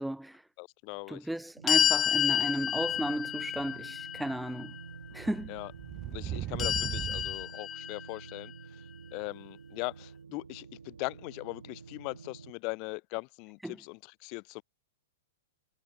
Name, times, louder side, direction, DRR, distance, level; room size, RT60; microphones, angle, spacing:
voice 1, 0.0-0.4 1.1-4.7 5.1-5.6 6.2-6.3 13.6-13.8, right 1 dB, 5° right, 2.4 m, -34 dB
voice 2, 0.6-1.3 5.5-5.7 6.1-8.5 9.1-14.6, left 33 dB, 45° left, 1.5 m, -40 dB
sound 1, 1.6-12.5, right 5 dB, 85° right, 6.4 m, -49 dB
sound 2, 1.7-4.8 6.6-8.3, left 10 dB, 25° left, 1.6 m, -30 dB
sound 3, 2.3-3.0 5.2-7.5, right 13 dB, 30° right, 3.7 m, -38 dB
hypercardioid pair, 115°, 0 cm